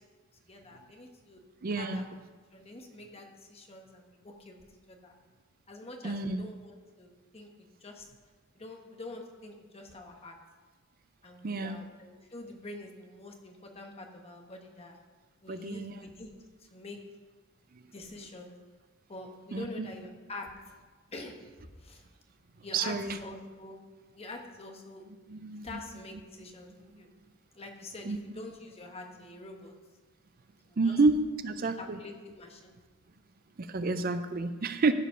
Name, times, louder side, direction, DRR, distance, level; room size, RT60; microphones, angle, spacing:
voice 1, 0.5-1.4 1.8-2.0 2.5-4.6 4.9-5.1 5.7-7.5 7.8-8.1 8.5-10.4 11.2-15.0 15.4-16.3 16.6-17.0 17.9-18.5 19.1-20.6 21.1-22.0 22.6-23.8 24.1-25.0 25.6-27.1 27.5-29.7 30.6-31.0 31.8-32.7, left 2 dB, 30° left, 3 dB, 1.2 m, -46 dB
voice 2, 1.6-2.0 6.0-6.5 11.4-11.8 15.5-15.9 19.5-19.9 22.7-23.2 25.3-25.7 28.1-28.2 30.8-31.2 31.4-32.0 33.6-34.9, right 3 dB, 45° right, 10 dB, 0.5 m, -29 dB
14.0 x 5.2 x 5.6 m, 1.4 s
head